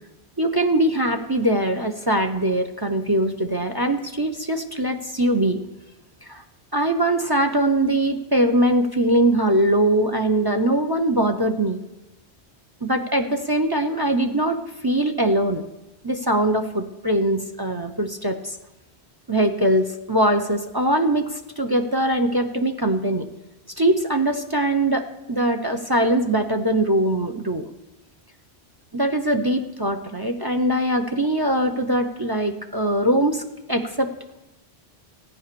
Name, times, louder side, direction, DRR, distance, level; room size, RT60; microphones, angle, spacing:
voice 1, 0.4-5.6 6.3-6.4 6.7-11.8 12.8-15.6 16.0-18.6 19.3-23.2 23.8-27.7 28.9-33.4 33.7-34.1, right 1 dB, 25° right, 8 dB, 0.7 m, -22 dB
14.0 x 9.4 x 6.8 m, 1.0 s
omnidirectional pair, 1.1 m